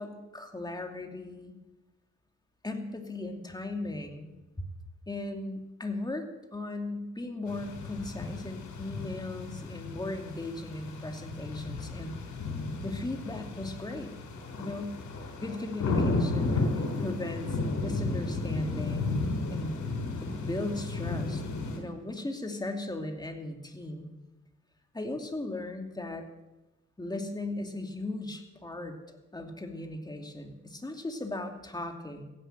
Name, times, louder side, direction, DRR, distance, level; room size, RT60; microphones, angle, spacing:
voice 1, 0.0-1.5 2.6-4.3 4.6-4.7 5.1-6.2 6.5-12.2 12.8-14.1 14.6-15.0 15.4-19.7 20.2-21.4 21.7-24.1 24.9-26.3 27.0-29.0 29.3-32.3, left 2 dB, 15° left, 3 dB, 2.6 m, -37 dB
sound 1, 7.5-21.8, left 3 dB, 90° left, 4.2 m, -33 dB
15.5 x 11.0 x 7.8 m, 1.1 s
cardioid pair, 90°, 30 cm